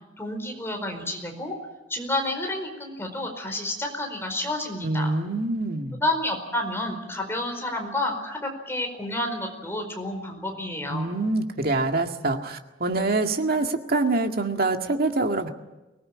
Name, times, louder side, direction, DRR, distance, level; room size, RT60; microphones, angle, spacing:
voice 1, 0.2-1.6 1.9-5.1 5.9-11.1, left 1 dB, 15° left, 3 dB, 4.7 m, -30 dB
voice 2, 4.8-6.0 10.9-15.5, right 2 dB, 50° right, 5 dB, 2.0 m, -25 dB
24.5 x 19.0 x 8.8 m, 1.1 s
head